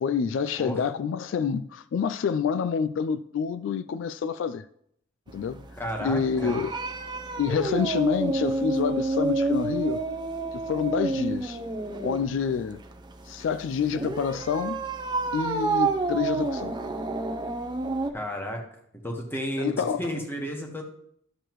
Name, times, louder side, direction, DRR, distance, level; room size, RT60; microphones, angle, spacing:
voice 1, 0.0-4.6 5.3-5.6 6.0-6.7 7.4-10.0 10.5-11.6 12.0-12.8 13.3-14.8 15.3-16.7 19.6-20.1, left 6 dB, 75° left, 0.3 m, -27 dB
sound 1, 5.3-18.1, right 3 dB, 25° right, 0.6 m, -30 dB
voice 2, 5.8-6.5 18.1-18.6 19.0-19.7 20.0-20.8, equal, 10° left, 1.3 m, -32 dB
12.5 x 6.5 x 3.0 m
head